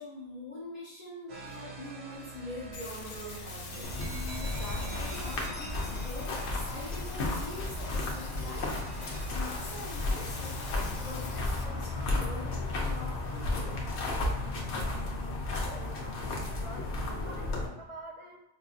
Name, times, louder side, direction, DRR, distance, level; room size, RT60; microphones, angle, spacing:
voice 1, 0.0-13.8, left 1 dB, 35° left, -7 dB, 0.8 m, -44 dB
sound 1, 1.3-9.2, right 2 dB, 65° right, 1.0 m, -45 dB
sound 2, 2.7-11.6, left 3 dB, 90° left, 1.1 m, -45 dB
sound 3, 3.8-17.7, left 2 dB, 70° left, 1.0 m, -33 dB
voice 2, 15.6-18.4, right 1 dB, 45° right, 0 dB, 0.4 m, -47 dB
4.6 x 2.6 x 2.5 m, 0.94 s
omnidirectional pair, 1.2 m